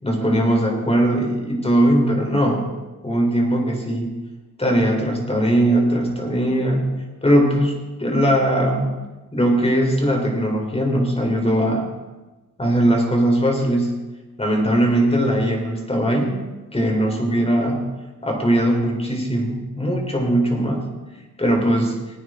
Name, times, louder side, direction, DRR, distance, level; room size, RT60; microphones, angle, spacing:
voice 1, 0.0-2.6 3.0-4.1 4.6-6.8 7.2-8.9 9.3-11.8 12.6-14.0 14.4-16.4 16.7-17.8 18.2-20.8 21.4-21.9, right 1 dB, 20° left, 1 dB, 4.2 m, -20 dB
20.0 x 9.6 x 3.9 m, 1.2 s
cardioid pair, 70°, 32 cm